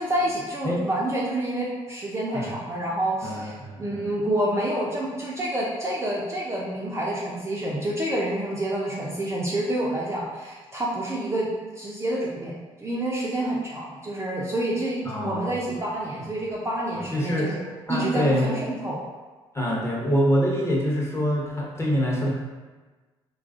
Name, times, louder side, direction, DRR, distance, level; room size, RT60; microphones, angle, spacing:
voice 1, 0.0-11.5 11.8-12.5 12.8-17.6 17.9-19.0, right 1 dB, 20° right, -5 dB, 0.5 m, -28 dB
voice 2, 3.2-4.1 15.0-15.5 16.9-17.5 17.9-18.6 19.5-22.3, equal, 20° left, -3 dB, 0.8 m, -25 dB
3.2 x 2.3 x 2.4 m, 1.3 s
figure-of-eight pair, 45°, 15 cm